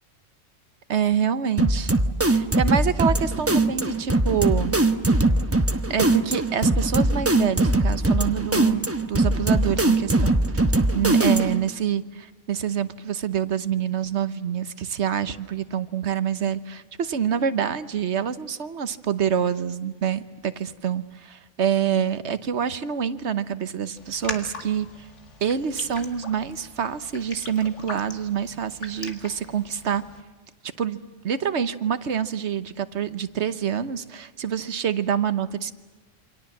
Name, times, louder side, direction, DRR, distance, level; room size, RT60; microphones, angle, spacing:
voice 1, 0.9-1.9 2.3-4.8 5.9-10.4 10.9-12.0 12.5-25.1 25.4-30.0 30.8-31.0 31.2-35.7, right 8 dB, 65° right, 12 dB, 1.3 m, -26 dB
sound 1, 1.6-11.7, right 2 dB, 10° right, 0.9 m, -21 dB
Raindrop, 24.0-30.2, left 3 dB, 70° left, 2.5 m, -40 dB
28.0 x 25.0 x 7.3 m, 1.2 s
omnidirectional pair, 1.3 m